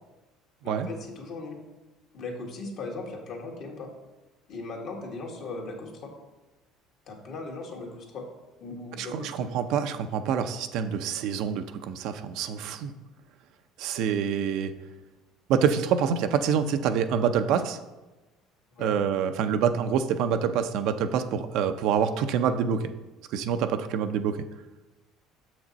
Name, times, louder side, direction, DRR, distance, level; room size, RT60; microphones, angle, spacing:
voice 1, 0.6-1.6 2.1-3.9 4.5-6.2 7.1-8.3 8.6-9.5 18.7-19.0, left 3 dB, 60° left, 0 dB, 1.8 m, -38 dB
voice 2, 9.0-12.9 13.8-14.7 15.5-17.8 18.8-22.8 23.3-24.4, right 7 dB, 70° right, 8 dB, 0.5 m, -26 dB
6.5 x 6.1 x 4.1 m, 1.1 s
supercardioid pair, 95°, 0 cm